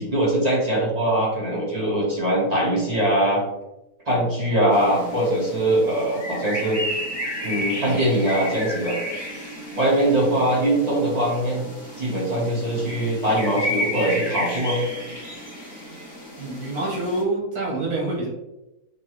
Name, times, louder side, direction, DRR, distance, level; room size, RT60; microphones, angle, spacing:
voice 1, 0.0-3.4 4.1-6.8 7.4-9.0 9.7-11.7 12.0-14.8, right 1 dB, 30° right, -5 dB, 1.1 m, -22 dB
sound 1, 4.7-17.2, equal, 20° left, 0.8 m, -33 dB
voice 2, 16.4-18.3, right 2 dB, 75° right, -4 dB, 2.1 m, -26 dB
5.5 x 2.3 x 3.0 m, 0.97 s
omnidirectional pair, 1.6 m